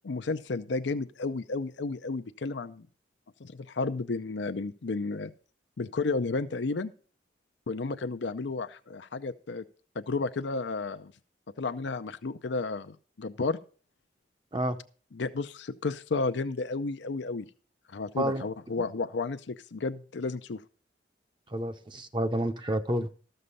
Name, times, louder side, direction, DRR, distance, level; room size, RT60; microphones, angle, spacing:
voice 1, 0.0-2.9 3.4-5.3 5.8-6.9 7.7-9.6 10.0-11.1 11.6-13.6 15.1-17.5 17.9-20.6, left 3 dB, 70° left, 11 dB, 0.6 m, -32 dB
voice 2, 18.2-18.5 18.8-18.9 21.5-23.1, right 1 dB, 25° right, 6 dB, 0.7 m, -29 dB
13.5 x 6.6 x 5.4 m, 0.40 s
head